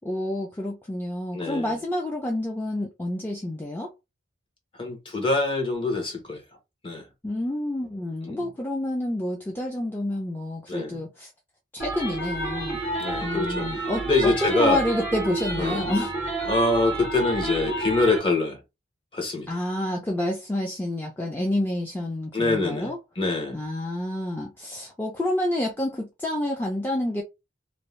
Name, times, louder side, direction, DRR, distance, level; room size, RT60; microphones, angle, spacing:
voice 1, 0.0-3.9 7.2-11.3 11.7-12.8 13.2-16.1 19.5-23.0 23.5-27.2, left 1 dB, 10° left, 0.4 m, -28 dB
voice 2, 1.3-1.8 4.8-6.4 6.8-7.0 8.2-8.5 10.7-11.0 13.0-14.8 15.6-15.8 16.5-18.6 19.1-19.6 22.3-23.6, left 2 dB, 30° left, 0.8 m, -25 dB
sound 1, 11.8-18.2, right 2 dB, 60° left, 1.6 m, -30 dB
2.6 x 2.0 x 3.1 m
head